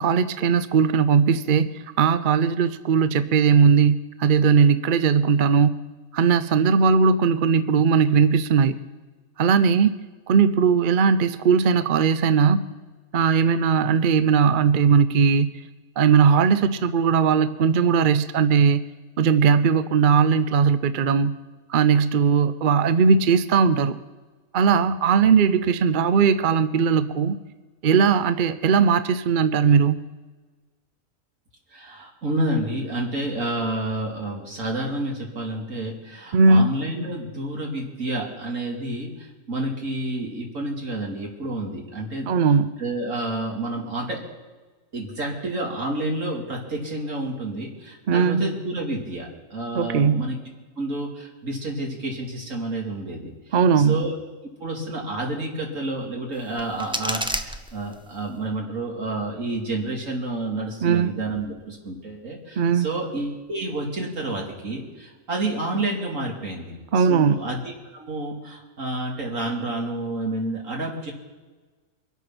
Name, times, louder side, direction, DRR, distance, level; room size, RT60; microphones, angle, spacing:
voice 1, 0.0-5.8 6.1-8.8 9.4-10.0 10.3-12.6 13.1-15.6 16.0-18.8 19.2-21.4 21.7-24.0 24.5-27.4 27.8-30.0 36.3-36.6 42.3-42.7 48.1-48.5 49.7-50.3 53.5-54.1 60.8-61.2 62.6-62.9 66.9-67.4, right 6 dB, 55° right, 13 dB, 0.6 m, -19 dB
voice 2, 31.7-42.3 42.8-44.2 44.9-50.4 50.8-54.1 54.6-71.1, right 2 dB, 70° right, -1 dB, 3.0 m, -29 dB
sound 1, 56.3-58.3, right 1 dB, 10° right, 0.3 m, -32 dB
23.5 x 8.3 x 6.0 m, 1.3 s
omnidirectional pair, 1.4 m